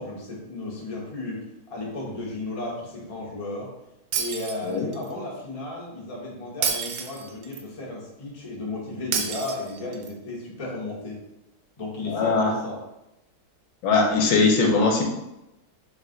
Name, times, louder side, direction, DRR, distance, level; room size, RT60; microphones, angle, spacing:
voice 1, 0.0-3.7 4.1-11.2 11.8-12.8, left 2 dB, 35° left, -4 dB, 0.5 m, -34 dB
Shatter, 4.1-5.1 6.6-7.6 9.1-10.1, right 6 dB, 75° right, 1.2 m, -29 dB
voice 2, 12.1-12.5 13.8-15.0, left 4 dB, 70° left, 2 dB, 1.3 m, -20 dB
3.4 x 3.2 x 3.7 m, 0.90 s
omnidirectional pair, 2.3 m